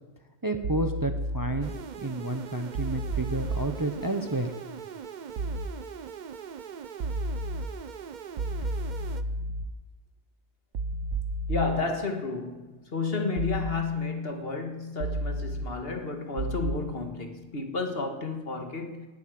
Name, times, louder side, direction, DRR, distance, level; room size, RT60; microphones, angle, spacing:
voice 1, 0.4-1.7 2.0-4.5, right 2 dB, 20° right, 0.9 m, -30 dB
sound 1, 0.6-1.6 2.7-3.7 5.4-5.7 7.0-7.7 8.4-9.6 10.7-11.7 13.4-13.7 15.0-15.7 16.4-16.7, right 2 dB, 90° right, 1.3 m, -31 dB
sound 2, 1.6-9.2, right 7 dB, 50° right, 0.6 m, -41 dB
voice 2, 11.5-19.1, left 4 dB, 50° left, 1.8 m, -31 dB
19.0 x 7.9 x 7.7 m
omnidirectional pair, 1.3 m